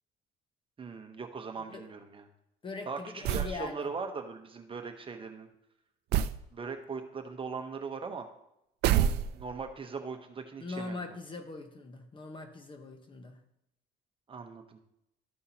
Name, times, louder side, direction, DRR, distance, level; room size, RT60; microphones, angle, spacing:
voice 1, 0.8-2.3 2.8-5.5 6.5-8.3 8.9-11.1 14.3-14.8, right 5 dB, 30° right, 6 dB, 0.9 m, -40 dB
voice 2, 2.6-3.9 10.6-13.4, left 3 dB, 30° left, 6 dB, 1.0 m, -41 dB
sound 1, 3.2-3.6 6.1-6.4 8.8-9.6, right 10 dB, 80° right, 0.4 m, -27 dB
13.0 x 5.6 x 2.9 m, 0.83 s
cardioid pair, 110°, 17 cm